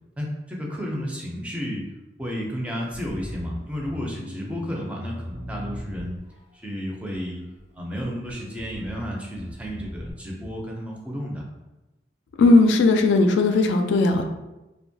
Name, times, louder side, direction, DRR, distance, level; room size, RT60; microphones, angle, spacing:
voice 1, 0.2-1.8 2.2-6.2 6.6-7.4 7.7-11.4, equal, 5° right, -2 dB, 0.4 m, -32 dB
Bass guitar, 2.9-6.5 7.1-7.7 8.0-10.1, equal, 85° right, 0.9 m, -38 dB
voice 2, 12.4-14.3, left 3 dB, 90° left, 5 dB, 0.3 m, -17 dB
2.9 x 2.2 x 2.6 m, 1.0 s
head